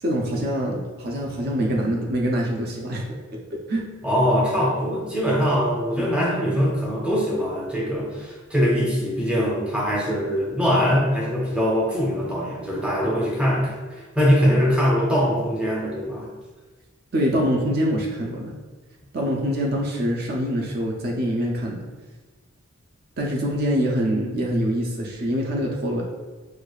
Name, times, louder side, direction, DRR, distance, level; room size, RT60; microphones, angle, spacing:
voice 1, 0.0-3.0 3.3-3.4 3.7-3.9 6.0-6.1 17.1-18.5 19.1-21.9 23.2-26.0, equal, 45° right, -1 dB, 0.4 m, -24 dB
voice 2, 4.0-16.3, equal, 5° right, -3 dB, 0.6 m, -22 dB
6.3 x 2.4 x 2.3 m, 1.3 s
head